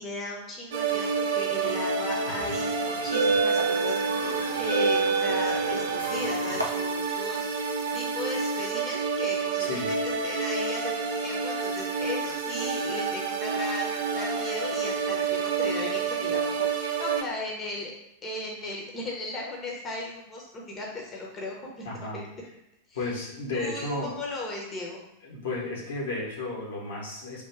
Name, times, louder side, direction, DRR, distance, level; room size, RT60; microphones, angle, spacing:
voice 1, 0.0-17.9 18.2-22.3 22.9-23.1 23.5-25.0, left 2 dB, 25° left, -2 dB, 0.8 m, -37 dB
sound 1, 0.7-17.2, right 5 dB, 55° right, 0.5 m, -29 dB
sound 2, 1.8-2.1 2.8-6.6, right 3 dB, 90° left, 0.6 m, -27 dB
voice 2, 9.6-9.9 21.8-22.2 22.9-24.2 25.2-27.4, left 2 dB, 60° left, -3 dB, 1.1 m, -33 dB
3.6 x 2.4 x 4.5 m, 0.83 s
figure-of-eight pair, 90°, 0 cm